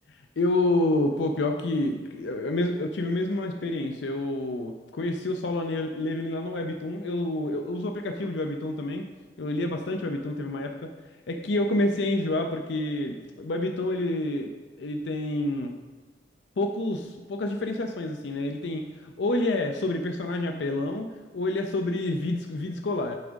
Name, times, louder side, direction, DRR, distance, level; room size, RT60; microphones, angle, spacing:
voice 1, 0.1-9.1 9.4-10.9 11.3-14.5 14.8-15.7 16.6-21.1 21.3-23.2, left 2 dB, 80° left, 4 dB, 0.5 m, -28 dB
9.6 x 3.5 x 5.1 m, 1.3 s
head